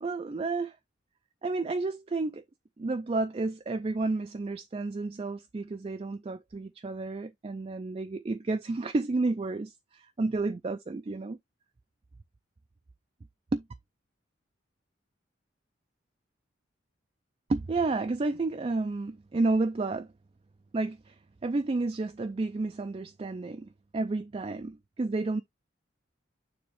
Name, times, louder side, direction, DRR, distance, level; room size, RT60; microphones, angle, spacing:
voice 1, 0.0-0.8 1.4-2.4 2.8-11.4 13.5-13.6 17.5-20.1 20.7-25.4, right 3 dB, 30° right, 0.3 m, -31 dB
6.9 x 3.0 x 5.0 m
head